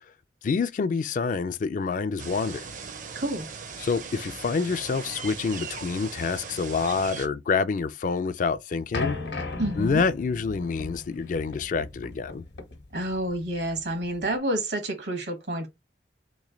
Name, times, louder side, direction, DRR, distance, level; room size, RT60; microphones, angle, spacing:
voice 1, 0.4-2.7 3.8-9.2 9.8-12.4, left 5 dB, 45° left, 0.3 m, -27 dB
sound 1, 2.2-7.3, right 5 dB, 45° right, 0.6 m, -39 dB
voice 2, 3.1-3.5 9.6-10.0 12.9-15.7, right 1 dB, 70° right, 1.2 m, -29 dB
sound 2, 8.9-14.3, left 3 dB, 70° left, 1.0 m, -36 dB
3.1 x 2.9 x 3.7 m
head